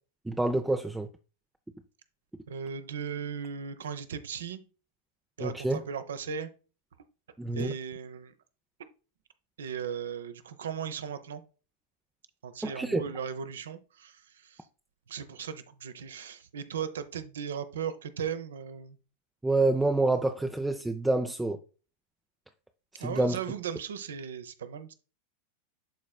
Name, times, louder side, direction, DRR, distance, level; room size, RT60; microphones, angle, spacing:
voice 1, 0.3-1.1 5.4-5.8 7.4-7.7 12.6-13.0 19.4-21.6 22.9-23.4, right 2 dB, 5° right, 0.5 m, -27 dB
voice 2, 2.5-4.6 5.4-6.5 7.5-8.3 8.8-8.9 9.6-11.4 12.4-14.6 15.1-19.0 23.0-24.9, right 7 dB, 65° right, 0.7 m, -37 dB
12.0 x 4.2 x 2.3 m
figure-of-eight pair, 90°, 0 cm